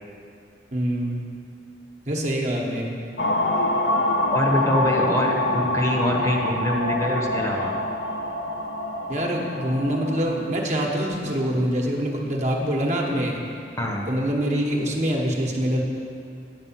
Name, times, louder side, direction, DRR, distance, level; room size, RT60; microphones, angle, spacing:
voice 1, 0.7-1.2 2.1-2.9 9.1-13.4 14.1-15.8, equal, 40° right, -1 dB, 1.1 m, -25 dB
sound 1, 3.2-10.2, left 1 dB, 75° left, 0.7 m, -25 dB
voice 2, 4.3-7.8 13.8-14.1, left 1 dB, 20° left, -1 dB, 0.9 m, -24 dB
9.4 x 5.0 x 7.3 m, 2.5 s
head